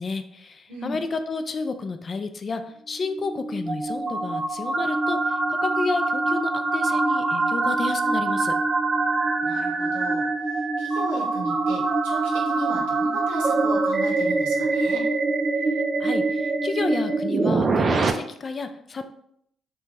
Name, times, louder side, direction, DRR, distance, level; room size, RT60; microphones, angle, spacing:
voice 1, 0.0-8.5 16.0-19.0, left 4 dB, 45° left, 8 dB, 0.3 m, -31 dB
sound 1, 3.0-18.1, right 3 dB, 45° right, 0.3 m, -24 dB
voice 2, 9.4-15.0, right 2 dB, 90° right, -1 dB, 0.7 m, -36 dB
2.6 x 2.2 x 3.1 m, 0.70 s
supercardioid pair, 60°, 0 cm